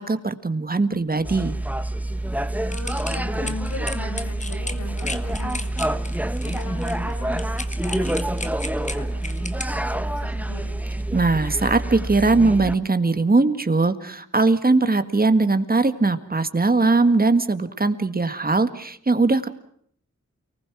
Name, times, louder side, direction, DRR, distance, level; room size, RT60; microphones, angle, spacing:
voice 1, 0.0-1.5 11.1-19.5, right 3 dB, 30° right, 10 dB, 1.7 m, -20 dB
sound 1, 1.2-12.8, right 1 dB, 5° right, 0.9 m, -27 dB
voice 2, 2.7-10.8, left 2 dB, 85° left, 4 dB, 6.6 m, -39 dB
sound 2, 2.7-9.6, left 2 dB, 25° left, 1.5 m, -34 dB
29.5 x 20.0 x 6.0 m, 0.65 s
wide cardioid pair, 110°, 29 cm